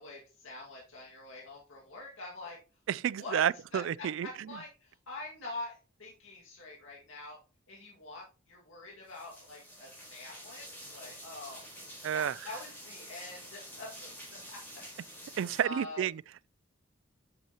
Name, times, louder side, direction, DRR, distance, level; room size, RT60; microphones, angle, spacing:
voice 1, 0.0-2.6 3.2-3.4 3.7-7.4 7.7-11.6 12.1-14.1 14.5-14.6 15.2-16.1, left 2 dB, 85° left, 2.0 m, -45 dB
voice 2, 2.9-4.3 12.0-12.4 15.4-16.5, right 9 dB, 70° right, 0.3 m, -31 dB
sound 1, 9.1-15.6, equal, 10° left, 4.0 m, -48 dB
8.4 x 7.8 x 2.9 m
head